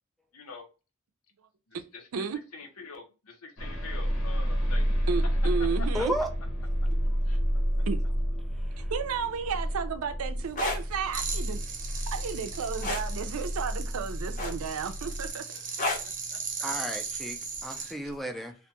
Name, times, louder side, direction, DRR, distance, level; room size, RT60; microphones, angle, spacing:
voice 1, 0.3-0.6 1.7-2.2 2.5-5.9 7.2-7.4 15.2-16.4, left 4 dB, 85° left, 0.8 m, -46 dB
sound 1, 3.6-15.3, equal, 65° left, 1.0 m, -30 dB
voice 2, 5.1-6.1 7.9-8.0 8.9-11.6 12.1-15.5, right 6 dB, 75° right, 0.4 m, -32 dB
voice 3, 5.9-6.3 8.5-8.9 16.6-18.6, right 1 dB, ahead, 0.3 m, -34 dB
sound 2, 10.4-10.8 12.8-13.1 14.4-14.8 15.8-16.1 17.5-17.7, left 2 dB, 35° left, 0.6 m, -30 dB
sound 3, 11.1-17.9, right 5 dB, 40° right, 0.6 m, -38 dB
2.5 x 2.2 x 2.8 m
head